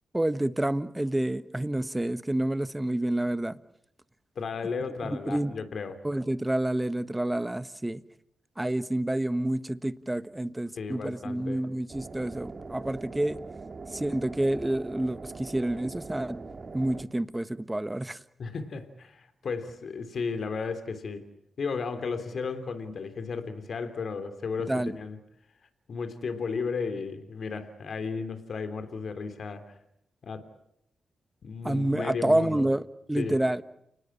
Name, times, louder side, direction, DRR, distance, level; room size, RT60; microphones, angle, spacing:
voice 1, 0.1-3.6 5.0-5.5 6.0-8.0 8.6-13.4 13.9-16.4 16.7-18.2 24.7-24.9 31.6-33.6, right 1 dB, 15° right, 1.4 m, -28 dB
voice 2, 4.3-5.9 10.8-11.6 18.4-21.2 21.6-25.2 25.9-29.6 30.2-30.5 31.4-32.7 33.2-33.4, left 5 dB, 65° left, 3.2 m, -34 dB
sound 1, 11.9-17.0, right 4 dB, 45° right, 2.3 m, -42 dB
29.5 x 19.5 x 8.7 m
supercardioid pair, 45°, 0 cm